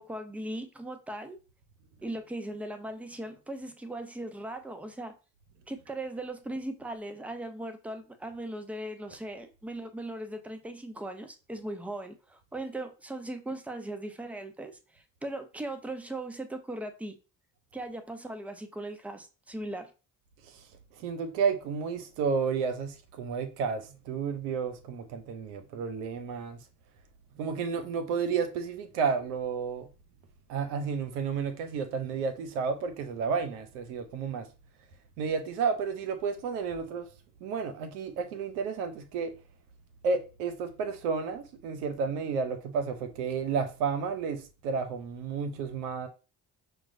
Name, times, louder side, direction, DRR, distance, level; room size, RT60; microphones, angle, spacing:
voice 1, 0.0-1.4 2.0-5.2 5.7-17.2 17.7-19.9, right 1 dB, 5° right, 0.6 m, -38 dB
voice 2, 20.9-26.6 27.4-29.9 30.5-34.5 35.2-37.1 37.4-39.4 40.0-46.1, right 5 dB, 90° right, 0.6 m, -31 dB
5.9 x 2.1 x 2.5 m
hypercardioid pair, 50°, 45 cm